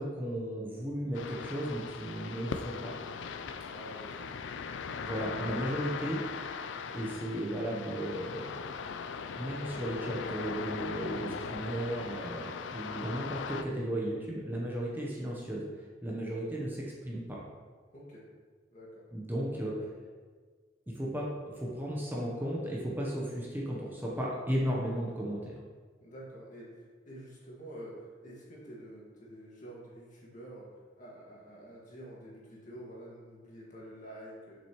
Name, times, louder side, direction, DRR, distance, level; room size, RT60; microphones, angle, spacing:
voice 1, 0.0-2.9 5.0-6.2 6.9-8.6 9.4-15.6 16.0-17.4 19.1-20.0 20.9-25.6, right 1 dB, 10° right, -4 dB, 0.8 m, -35 dB
sound 1, 1.1-13.6, left 5 dB, 90° left, 0.4 m, -39 dB
voice 2, 3.6-4.4 17.9-18.3 18.7-19.1 26.0-34.6, right 1 dB, 45° left, -4 dB, 1.8 m, -48 dB
6.8 x 5.8 x 3.0 m, 1.5 s
head